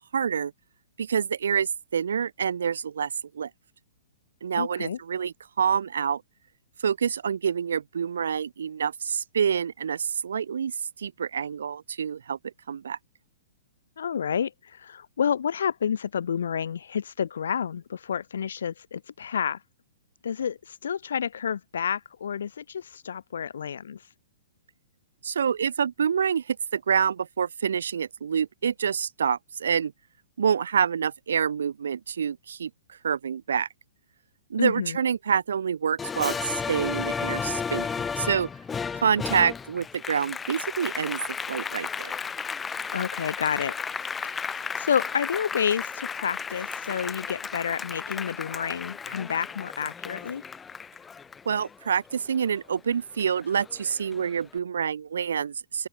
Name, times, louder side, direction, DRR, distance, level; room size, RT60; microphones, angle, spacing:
voice 1, 0.1-0.5 1.0-3.5 4.4-6.2 6.8-13.0 25.2-29.9 30.4-33.7 34.5-38.5 38.9-41.2 41.5-42.2 51.5-55.9, right 7 dB, 85° right, 2.2 m, -27 dB
voice 2, 4.5-5.0 14.0-19.6 20.2-24.0 34.6-35.0 42.9-43.7 44.3-50.4, left 7 dB, 80° left, 5.6 m, -29 dB
Applause, 36.0-52.8 53.2-54.4, left 6 dB, 10° left, 2.8 m, -34 dB
open air
hypercardioid pair, 150°, 0 cm